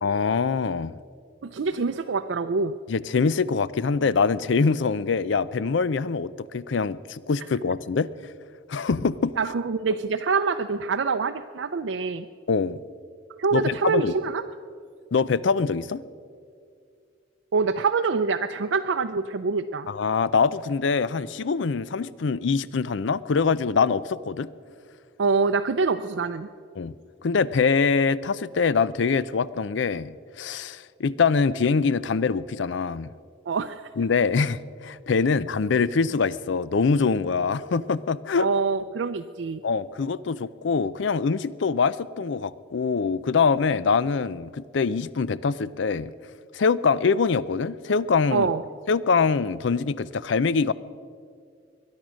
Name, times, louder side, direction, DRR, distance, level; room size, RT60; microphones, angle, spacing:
voice 1, 0.0-1.0 2.9-8.1 8.7-9.4 12.5-12.8 13.5-14.1 15.1-16.0 19.9-24.5 26.8-26.9 27.2-33.1 34.0-38.5 39.6-46.1 46.5-48.5 48.9-50.7, left 5 dB, 70° left, 18 dB, 0.5 m, -24 dB
voice 2, 1.4-2.8 9.4-12.3 13.4-14.4 17.5-19.9 25.2-26.5 33.5-33.9 38.4-39.6 48.3-48.6, right 4 dB, 70° right, 6 dB, 0.5 m, -25 dB
22.0 x 10.5 x 6.3 m, 2.3 s
head